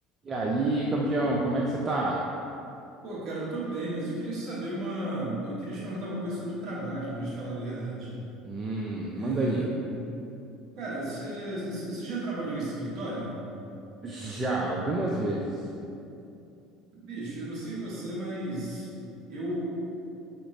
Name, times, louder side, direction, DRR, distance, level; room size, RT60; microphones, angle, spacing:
voice 1, 0.2-2.3 8.4-9.7 14.0-15.5, right 2 dB, 25° right, -3 dB, 0.4 m, -28 dB
voice 2, 3.0-8.2 9.1-9.7 10.8-13.3 17.0-18.9 19.3-19.7, right 1 dB, 45° right, -7 dB, 1.2 m, -34 dB
4.9 x 2.9 x 2.5 m, 2.7 s
figure-of-eight pair, 65°, 0 cm